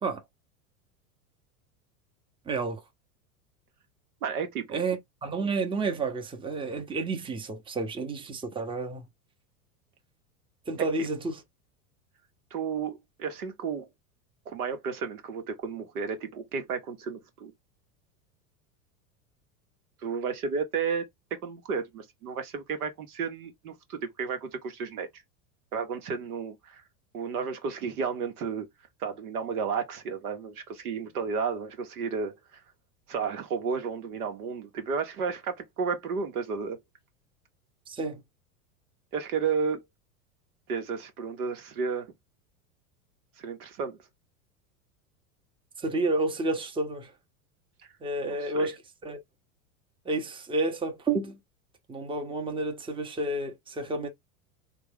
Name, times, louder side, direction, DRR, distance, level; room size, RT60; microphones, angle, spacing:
voice 1, 2.5-2.8 4.7-9.1 10.7-11.4 37.9-38.2 45.8-47.1 48.0-49.2 50.0-51.4 51.9-54.1, right 3 dB, 10° right, 0.8 m, -30 dB
voice 2, 4.2-4.8 11.0-11.1 12.5-13.9 14.5-17.5 20.0-25.1 25.7-26.8 27.1-28.7 29.0-32.6 33.1-36.8 39.1-39.8 40.7-42.1 43.4-44.0 48.3-48.7, right 5 dB, 80° right, 1.0 m, -32 dB
3.4 x 2.3 x 3.3 m
hypercardioid pair, 95°, 45 cm